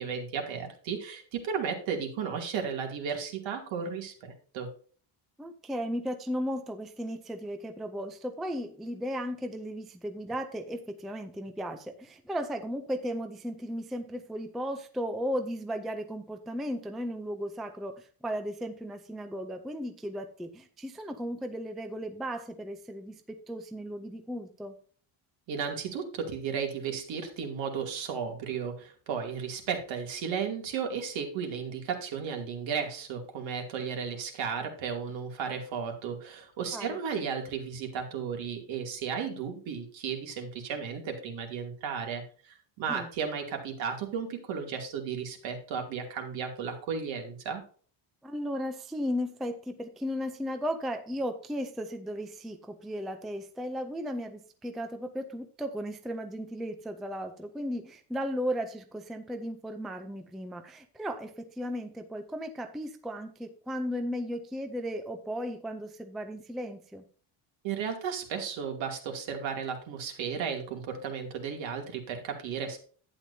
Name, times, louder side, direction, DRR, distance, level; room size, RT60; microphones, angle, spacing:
voice 1, 0.0-4.7 25.5-47.6 67.6-72.8, right 6 dB, 65° right, 3 dB, 2.7 m, -34 dB
voice 2, 5.4-24.7 36.7-37.0 42.9-43.1 48.2-67.0, equal, ahead, 7 dB, 0.4 m, -35 dB
11.5 x 9.2 x 2.7 m, 0.43 s
cardioid pair, 175°, 49 cm